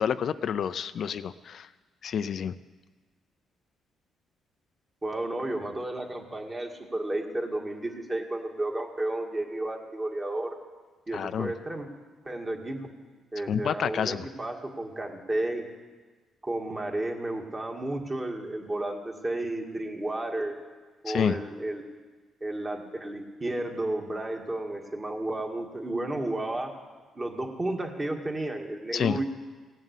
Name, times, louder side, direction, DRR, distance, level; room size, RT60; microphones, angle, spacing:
voice 1, 0.0-1.7 2.0-2.5 11.1-11.5 13.5-14.2 21.1-21.4 28.9-29.2, left 8 dB, 60° left, 12 dB, 0.4 m, -28 dB
voice 2, 5.0-10.5 11.1-11.9 12.2-12.9 13.3-15.7 16.4-20.5 21.0-21.8 22.4-26.8 27.2-29.2, right 1 dB, 25° right, 2 dB, 2.0 m, -32 dB
17.0 x 7.5 x 8.3 m, 1.4 s
cardioid pair, 90°, 0 cm